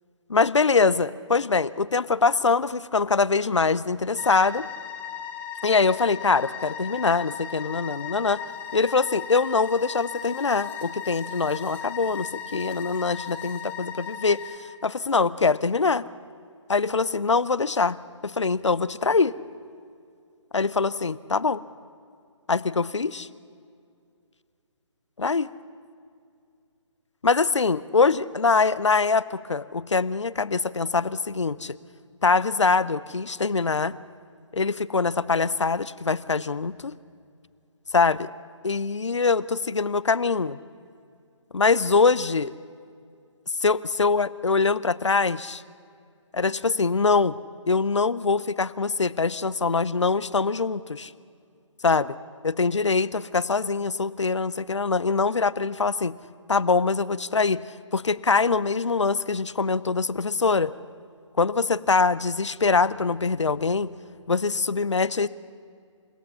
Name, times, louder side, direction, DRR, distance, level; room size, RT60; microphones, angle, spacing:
voice 1, 0.3-4.7 5.6-8.4 8.7-14.4 14.8-16.0 16.7-18.0 18.2-19.3 20.5-21.6 22.5-23.3 25.2-25.5 27.2-31.7 32.2-34.0 34.5-36.9 37.9-38.3 38.6-40.6 41.5-42.5 43.6-45.6 46.3-47.4 47.7-51.1 51.8-52.2 52.4-56.1 56.5-57.6 57.9-60.7 61.4-63.9 64.3-65.3, left 4 dB, 65° left, 18 dB, 0.8 m, -23 dB
sound 1, 4.2-14.6, left 8 dB, 10° left, 1.1 m, -37 dB
29.5 x 17.0 x 5.7 m, 2.3 s
figure-of-eight pair, 145°, 16 cm